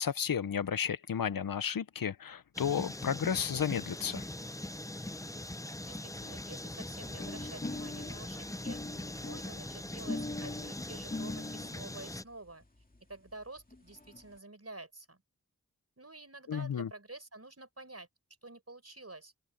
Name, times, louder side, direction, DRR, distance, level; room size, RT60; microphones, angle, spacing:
voice 1, 0.0-4.3 16.5-16.9, left 7 dB, 80° left, 0.7 m, -33 dB
sound 1, 2.5-12.2, left 1 dB, 10° left, 0.6 m, -42 dB
voice 2, 5.8-8.8 9.2-12.6 13.1-15.2 16.0-18.1 18.4-19.3, right 2 dB, 45° right, 5.6 m, -49 dB
sound 2, 7.2-11.8 12.6-12.7 12.9-13.0 13.3-13.4 13.6-14.2, left 2 dB, 25° left, 2.4 m, -41 dB
open air
wide cardioid pair, 50°, 33 cm